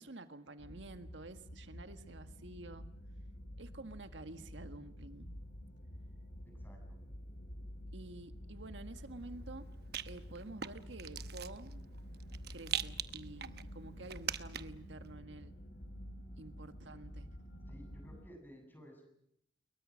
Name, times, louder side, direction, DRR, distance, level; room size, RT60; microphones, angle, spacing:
voice 1, 0.0-2.9 3.6-5.4 7.9-9.7 10.0-11.8 12.5-15.5 16.4-17.3, right 2 dB, 85° right, 8 dB, 1.6 m, -50 dB
sound 1, 0.6-18.2, equal, 70° left, 3.1 m, -49 dB
voice 2, 6.4-7.0 17.7-19.0, equal, 10° left, 3 dB, 7.8 m, -56 dB
Rattle, 8.8-14.9, right 10 dB, 60° right, 0.9 m, -44 dB
29.0 x 22.5 x 6.3 m, 0.75 s
head